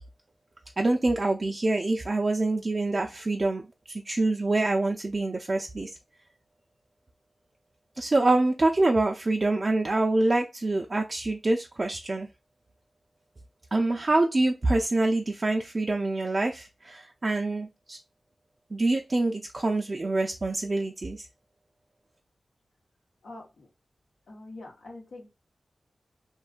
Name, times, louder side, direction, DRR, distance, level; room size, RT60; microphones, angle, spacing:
voice 1, 0.8-3.6 3.9-5.9 8.0-12.3 13.7-18.0 18.7-21.3, right 2 dB, 45° right, 1 dB, 0.3 m, -26 dB
voice 2, 23.2-23.7 24.3-25.3, left 2 dB, 90° left, 0 dB, 0.9 m, -44 dB
2.6 x 2.2 x 2.4 m, 0.23 s
cardioid pair, 50°, 0 cm